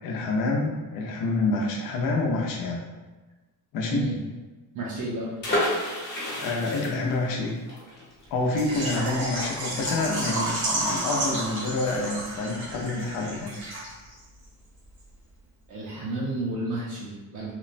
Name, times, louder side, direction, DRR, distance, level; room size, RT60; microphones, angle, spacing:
voice 1, 0.0-2.8 3.7-4.1 6.4-7.6 8.3-13.5, left 3 dB, 65° left, -1 dB, 0.6 m, -27 dB
voice 2, 4.7-5.4 8.7-9.2 15.7-17.5, right 2 dB, 55° right, -6 dB, 0.5 m, -31 dB
sound 1, 5.4-11.0 11.3-11.4 11.7-12.0, left 1 dB, 30° left, 0.8 m, -31 dB
Water / Liquid, 8.6-14.2 14.4-14.5 15.0-15.1, right 1 dB, 80° right, 1.2 m, -31 dB
2.9 x 2.1 x 2.5 m, 1.2 s
cardioid pair, 175°, 36 cm